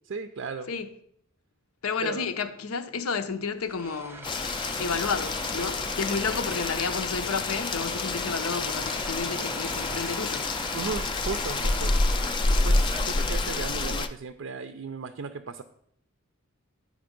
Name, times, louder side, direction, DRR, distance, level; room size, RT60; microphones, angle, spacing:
voice 1, 0.1-0.7 2.0-2.3 10.7-11.9 12.5-15.6, right 4 dB, 60° right, 0.4 m, -35 dB
voice 2, 1.8-4.2 4.8-10.5, left 5 dB, 85° left, 0.7 m, -31 dB
sound 1, 3.6-13.9, right 1 dB, 10° right, 0.8 m, -40 dB
Rain, 4.2-14.1, left 3 dB, 20° left, 0.3 m, -28 dB
9.5 x 5.1 x 5.1 m
head